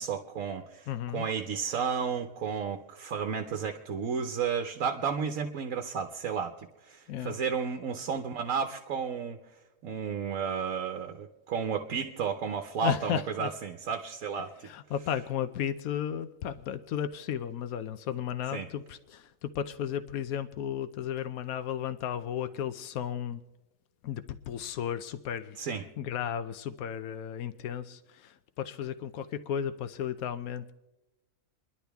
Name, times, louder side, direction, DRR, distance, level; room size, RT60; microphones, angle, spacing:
voice 1, 0.0-9.4 9.8-14.7 18.5-18.7 25.6-25.9, right 6 dB, 75° right, 5 dB, 1.2 m, -32 dB
voice 2, 0.9-1.3 7.1-7.4 12.8-13.5 14.6-23.4 24.0-25.6 26.0-30.7, left 9 dB, 85° left, 11 dB, 1.1 m, -34 dB
29.0 x 11.0 x 3.5 m, 1.1 s
omnidirectional pair, 1.5 m